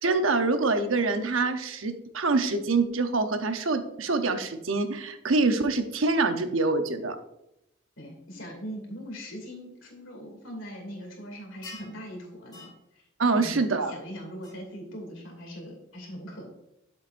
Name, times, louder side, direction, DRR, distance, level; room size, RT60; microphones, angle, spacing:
voice 1, 0.0-7.2 13.2-13.9, right 3 dB, 85° right, 8 dB, 0.9 m, -25 dB
voice 2, 8.0-13.1 13.3-16.5, equal, 75° left, 1 dB, 2.7 m, -41 dB
sound 1, 11.6-12.0 12.5-12.8 14.4-14.5, left 2 dB, 20° left, 2.4 m, -45 dB
8.7 x 7.6 x 2.6 m, 0.82 s
head